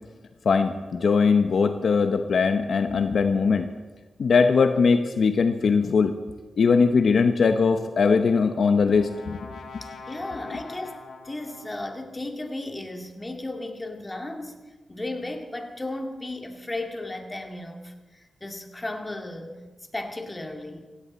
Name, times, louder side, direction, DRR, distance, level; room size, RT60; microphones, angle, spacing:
voice 1, 0.4-3.7 4.2-6.1 6.6-9.4, left 5 dB, 70° left, 8 dB, 0.8 m, -20 dB
Brass instrument, 8.1-12.2, left 4 dB, 85° left, 1.8 m, -44 dB
voice 2, 9.8-11.0 11.2-14.6 14.9-19.6 19.9-20.9, left 2 dB, 20° left, 3 dB, 2.1 m, -35 dB
17.0 x 16.5 x 4.2 m, 1.2 s
cardioid pair, 80°, 0 cm